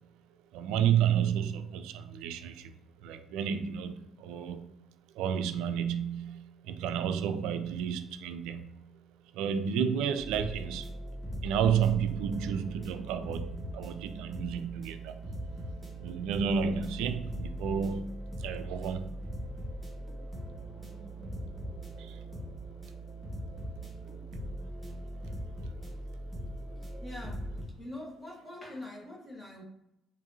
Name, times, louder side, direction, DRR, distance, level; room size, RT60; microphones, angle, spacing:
voice 1, 0.5-2.7 3.0-4.7 5.2-8.7 9.3-10.9 11.4-15.2 16.0-19.1 22.0-22.2 25.6-25.7, right 8 dB, 70° right, 9 dB, 0.3 m, -31 dB
sound 1, 10.2-27.6, right 1 dB, 10° right, 1.3 m, -40 dB
voice 2, 26.4-27.5 27.8-29.6, left 1 dB, 20° left, -2 dB, 1.4 m, -44 dB
4.8 x 2.6 x 2.7 m, 0.80 s
hypercardioid pair, 50°, 0 cm